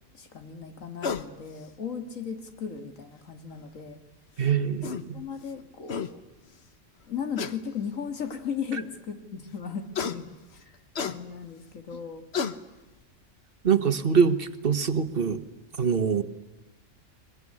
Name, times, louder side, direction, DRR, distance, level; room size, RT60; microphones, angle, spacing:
voice 1, 0.1-4.0 5.1-6.2 7.1-10.6 11.0-12.2, left 7 dB, 85° left, 7 dB, 2.3 m, -36 dB
sound 1, 1.0-1.3 2.8-2.9 4.4-4.5 4.8-5.0 5.6-5.7 5.9-6.1 7.4-7.6 8.4-8.5 9.9-10.2 10.9-11.2 11.9-12.0 12.3-12.6, left 6 dB, 55° left, 1.3 m, -30 dB
voice 2, 4.4-5.1 13.6-15.4 15.8-16.2, right 6 dB, 45° right, 11 dB, 1.5 m, -24 dB
23.0 x 21.0 x 9.9 m, 1.1 s
omnidirectional pair, 1.3 m